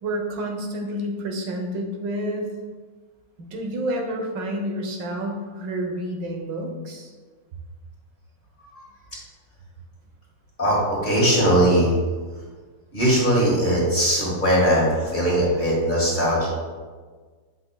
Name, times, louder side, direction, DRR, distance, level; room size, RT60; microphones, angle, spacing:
voice 1, 0.0-2.5 3.4-7.1, right 1 dB, 90° right, 2 dB, 1.6 m, -29 dB
voice 2, 10.6-11.9 12.9-16.5, equal, 30° left, -5 dB, 1.7 m, -20 dB
7.6 x 5.6 x 2.2 m, 1.5 s
omnidirectional pair, 1.9 m